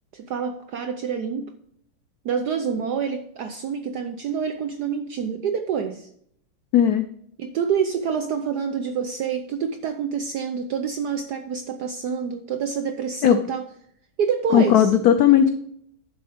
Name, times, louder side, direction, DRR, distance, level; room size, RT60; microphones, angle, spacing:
voice 1, 0.1-1.5 2.2-6.1 7.4-13.7 14.2-14.9, right 6 dB, 70° right, 7 dB, 1.0 m, -27 dB
voice 2, 6.7-7.1 13.2-13.4 14.5-15.5, left 10 dB, 85° left, 10 dB, 0.8 m, -16 dB
11.0 x 7.2 x 3.5 m, 0.69 s
omnidirectional pair, 2.4 m